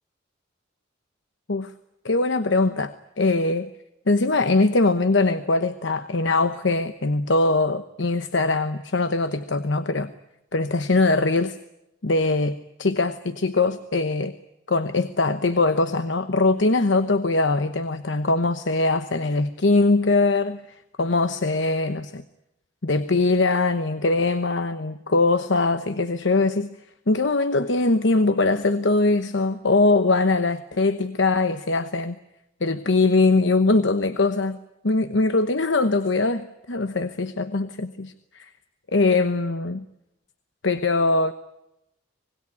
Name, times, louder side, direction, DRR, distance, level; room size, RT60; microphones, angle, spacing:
voice 1, 2.0-3.7 4.1-10.1 10.5-11.6 12.0-14.3 14.7-20.6 21.0-22.2 22.8-26.7 27.1-32.2 32.6-34.6 34.8-38.5 38.9-39.8 40.6-41.3, left 3 dB, 70° left, 10 dB, 1.0 m, -22 dB
25.5 x 20.0 x 9.7 m, 0.86 s
head